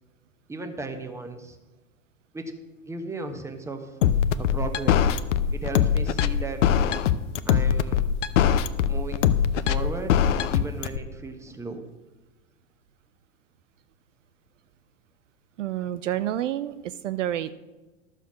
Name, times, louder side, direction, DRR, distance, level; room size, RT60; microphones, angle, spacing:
voice 1, 0.5-1.6 2.3-2.5 2.8-4.0 4.4-5.1 5.5-6.7 7.4-8.0 8.9-9.2 9.6-10.2 10.5-11.8, right 3 dB, 5° right, 6 dB, 1.2 m, -35 dB
sound 1, 4.0-11.0, left 9 dB, 60° left, 0.7 m, -21 dB
voice 2, 15.6-17.5, right 12 dB, 60° right, 13 dB, 0.6 m, -29 dB
13.0 x 6.7 x 6.2 m, 1.2 s
figure-of-eight pair, 95°, 42 cm